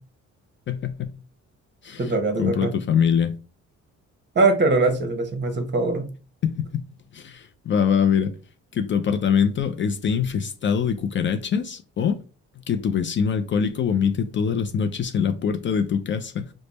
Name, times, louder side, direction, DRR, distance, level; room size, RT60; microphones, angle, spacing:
voice 1, 0.7-1.1 1.8-2.1 2.4-3.3 6.4-6.9 7.1-8.3 8.7-12.2 12.7-16.5, left 7 dB, 40° left, 0.4 m, -23 dB
voice 2, 2.0-2.7 4.3-6.1, right 3 dB, 35° right, 1.0 m, -22 dB
3.3 x 2.1 x 4.0 m
cardioid pair, 90°, 30 cm